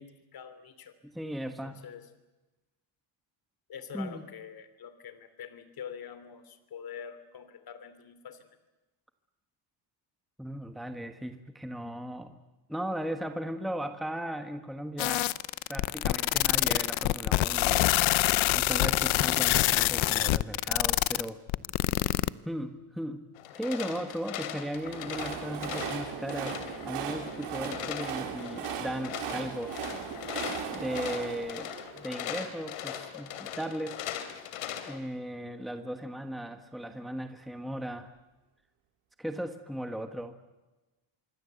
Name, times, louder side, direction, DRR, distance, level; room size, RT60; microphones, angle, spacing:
voice 1, 0.0-0.9 1.6-2.1 3.7-8.5, left 7 dB, 45° left, 12 dB, 3.0 m, -45 dB
voice 2, 1.0-1.8 3.9-4.2 10.4-12.4 12.7-15.3 15.7-17.8 18.5-21.4 22.4-23.3 23.5-29.7 30.7-34.0 34.9-38.1 39.2-40.3, equal, ahead, 7 dB, 1.4 m, -37 dB
sound 1, 15.0-22.3, left 17 dB, 65° left, 0.8 m, -25 dB
sound 2, 23.4-35.0, left 10 dB, 90° left, 3.2 m, -40 dB
Train, 24.6-32.7, right 8 dB, 85° right, 4.6 m, -38 dB
26.0 x 23.5 x 8.2 m, 1.1 s
cardioid pair, 135°, 50 cm